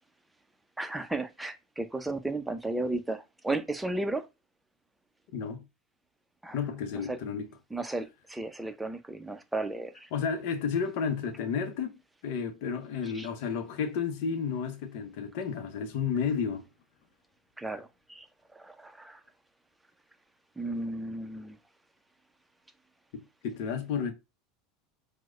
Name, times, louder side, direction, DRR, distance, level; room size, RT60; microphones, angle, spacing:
voice 1, 0.8-4.3 6.4-6.6 7.1-7.2 7.7-10.1 13.1-13.3 17.6-18.3 18.5-19.2 20.6-21.6, right 2 dB, 5° right, 0.5 m, -34 dB
voice 2, 5.3-5.6 6.5-7.5 10.1-12.0 12.2-16.6 23.1-24.1, left 6 dB, 65° left, 0.7 m, -32 dB
4.6 x 2.1 x 2.4 m
hypercardioid pair, 85°, 0 cm